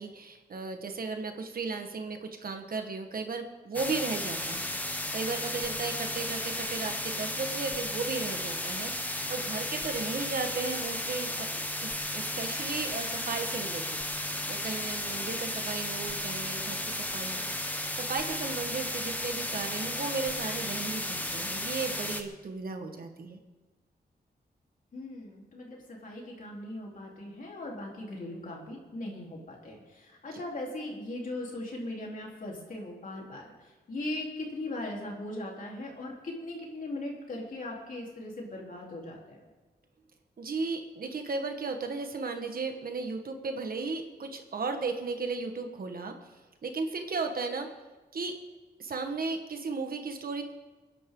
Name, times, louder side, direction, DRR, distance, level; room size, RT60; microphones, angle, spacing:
voice 1, 0.0-14.0 14.5-17.4 17.7-23.4 40.4-47.7 48.1-48.3 48.8-50.4, right 4 dB, 60° right, 5 dB, 1.5 m, -35 dB
sound 1, 3.7-22.2, left 1 dB, 10° left, 1.1 m, -34 dB
voice 2, 24.9-39.4, left 1 dB, 50° left, -2 dB, 3.7 m, -39 dB
29.0 x 11.0 x 3.8 m, 1.2 s
wide cardioid pair, 160°, 17 cm